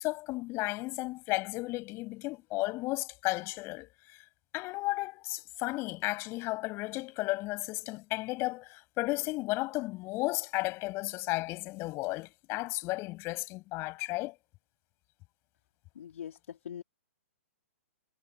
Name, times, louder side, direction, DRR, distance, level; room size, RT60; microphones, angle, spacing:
voice 1, 0.0-4.2 4.5-14.3, left 21 dB, 30° left, 7.6 m, -34 dB
voice 2, 15.9-16.8, left 9 dB, 65° left, 3.0 m, -42 dB
hypercardioid pair, 125°, 8 cm